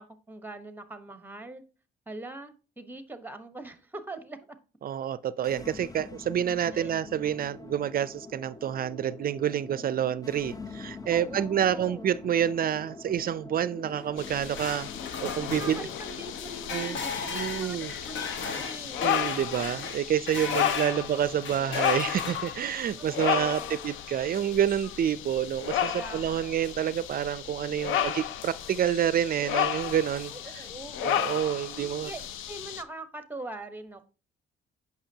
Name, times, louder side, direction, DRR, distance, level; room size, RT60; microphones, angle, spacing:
voice 1, 0.0-1.6 2.1-4.6 6.7-7.1 11.0-12.2 15.5-19.1 20.5-21.1 23.0-23.9 25.8-26.7 30.3-31.4 31.7-34.1, right 2 dB, 10° right, 1.1 m, -43 dB
voice 2, 4.8-14.9 15.2-15.9 16.7-17.0 17.3-17.9 19.0-30.6 31.0-32.1, right 10 dB, 50° right, 0.4 m, -28 dB
sound 1, 5.4-21.4, left 3 dB, 20° left, 0.5 m, -46 dB
sound 2, 14.0-21.0 21.4-22.8, left 5 dB, 70° left, 1.4 m, -36 dB
sound 3, 14.2-32.8, left 10 dB, 90° left, 0.6 m, -33 dB
8.7 x 5.9 x 2.8 m
cardioid pair, 90°, 20 cm